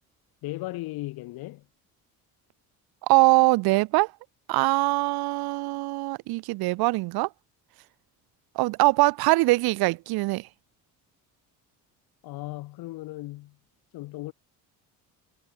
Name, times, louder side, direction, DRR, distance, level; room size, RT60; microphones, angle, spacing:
voice 1, 0.4-1.7 12.2-13.6 13.9-14.3, left 19 dB, 90° left, 5.3 m, -36 dB
voice 2, 3.0-4.1 4.5-7.3 8.5-10.5, right 21 dB, 85° right, 1.0 m, -22 dB
cardioid pair, 170°, 36 cm